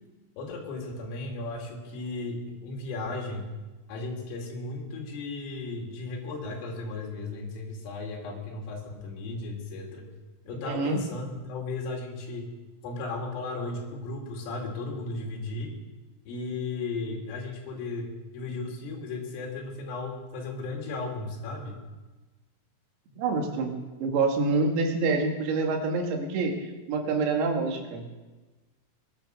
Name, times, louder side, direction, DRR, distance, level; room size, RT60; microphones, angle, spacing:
voice 1, 0.4-3.5 3.9-10.1 10.5-12.5 12.8-15.7 16.3-21.8, left 3 dB, 75° left, 0 dB, 5.2 m, -35 dB
voice 2, 10.5-11.0 23.2-28.0, right 3 dB, 90° right, 3 dB, 4.7 m, -27 dB
21.0 x 10.5 x 6.6 m, 1.2 s
omnidirectional pair, 6.0 m